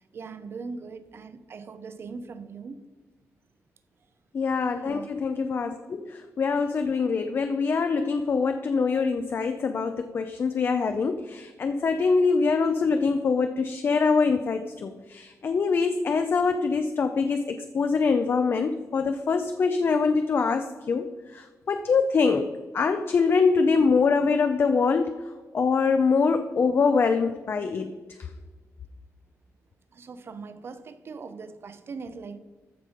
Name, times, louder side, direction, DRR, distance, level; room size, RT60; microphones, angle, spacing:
voice 1, 0.1-2.8 4.8-5.1 29.9-32.4, right 4 dB, 45° right, 0.7 m, -40 dB
voice 2, 4.3-25.2 25.5-28.0, left 4 dB, 45° left, 0.5 m, -24 dB
14.0 x 5.6 x 5.0 m
wide cardioid pair, 145°, 5 cm